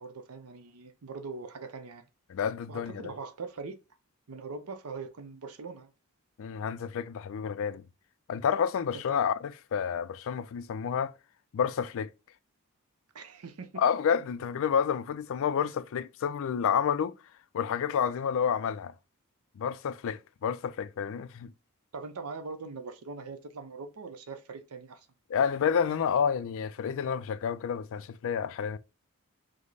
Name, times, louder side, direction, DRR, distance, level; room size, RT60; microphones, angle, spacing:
voice 1, 0.0-2.0 2.7-3.8 4.3-5.9 9.1-9.3 13.1-13.8 21.9-25.1, right 4 dB, 80° right, 0.6 m, -41 dB
voice 2, 2.3-3.1 6.4-7.8 8.3-11.1 11.5-12.1 13.8-17.1 17.5-18.9 19.6-21.5 25.3-28.8, left 7 dB, 65° left, 0.3 m, -29 dB
5.1 x 2.1 x 3.9 m
head